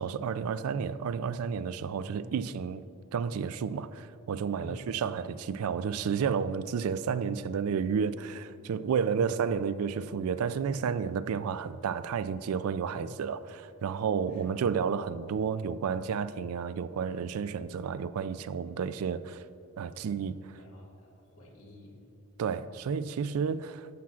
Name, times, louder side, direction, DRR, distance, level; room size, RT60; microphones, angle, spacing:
voice 1, 0.0-2.8 3.1-19.4 19.8-20.4 22.4-23.9, right 6 dB, 85° right, 0.3 m, -31 dB
voice 2, 2.0-2.5 4.6-4.9 8.9-9.3 12.9-13.2 14.3-14.7 20.6-22.0, equal, 75° left, 1.9 m, -48 dB
11.5 x 7.3 x 2.5 m
head